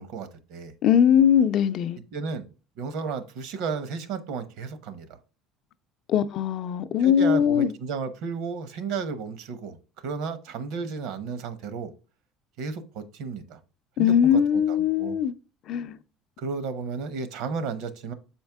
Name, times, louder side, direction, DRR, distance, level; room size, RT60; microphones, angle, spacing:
voice 1, 0.0-0.7 2.1-2.4 2.8-5.2 7.0-9.8 10.0-11.9 12.6-13.6 14.0-15.2 16.4-18.1, right 5 dB, 70° right, 1.0 m, -33 dB
voice 2, 0.8-2.0 6.1-7.7 14.0-15.3 15.7-16.0, left 8 dB, 50° left, 0.5 m, -21 dB
7.2 x 4.4 x 3.4 m
cardioid pair, 140°, 0 cm